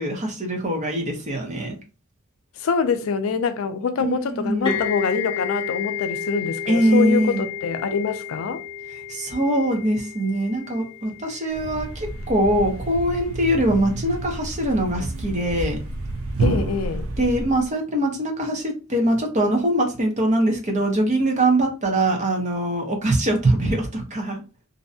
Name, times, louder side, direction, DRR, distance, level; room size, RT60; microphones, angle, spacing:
voice 1, 0.0-1.8 4.0-4.8 6.7-7.4 9.1-15.8 17.2-24.4, right 1 dB, 35° right, 0.7 m, -22 dB
voice 2, 2.6-8.6 16.4-17.1, left 5 dB, 70° left, 0.4 m, -25 dB
sound 1, 4.7-12.2, left 7 dB, 20° left, 0.7 m, -32 dB
Thump thud, 11.5-17.7, right 2 dB, 75° right, 0.5 m, -29 dB
2.6 x 2.2 x 2.6 m
head